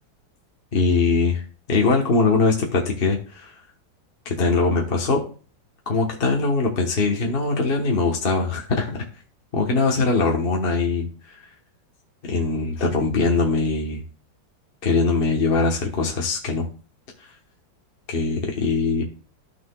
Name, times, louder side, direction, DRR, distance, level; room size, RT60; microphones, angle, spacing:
voice 1, 0.7-1.4 1.7-3.5 4.2-5.2 5.9-9.0 9.5-11.1 12.3-14.0 14.8-16.7 18.1-19.0, left 3 dB, 35° left, 1 dB, 1.2 m, -21 dB
14.5 x 6.0 x 2.3 m, 0.38 s
omnidirectional pair, 2.0 m